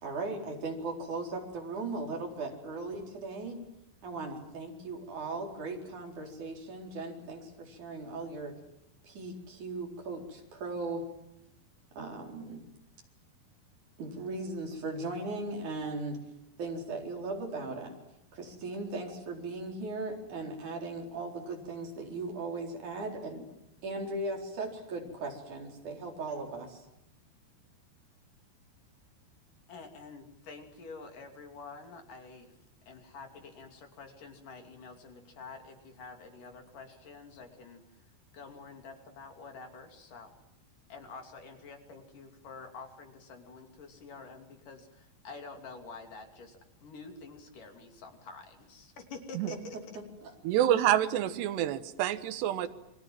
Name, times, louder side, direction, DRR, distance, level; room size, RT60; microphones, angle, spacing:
voice 1, 0.0-3.6 4.0-8.6 9.0-11.1 12.0-12.6 14.0-16.2 16.6-17.9 18.3-23.4 23.8-26.8 50.0-50.3, right 2 dB, 45° right, 2 dB, 5.5 m, -38 dB
voice 2, 29.7-32.6 32.9-38.0 38.3-40.3 40.9-50.0, left 4 dB, 50° left, 5 dB, 4.2 m, -48 dB
voice 3, 50.4-52.7, right 11 dB, 75° right, 10 dB, 3.3 m, -27 dB
29.5 x 23.5 x 7.6 m, 0.85 s
omnidirectional pair, 5.0 m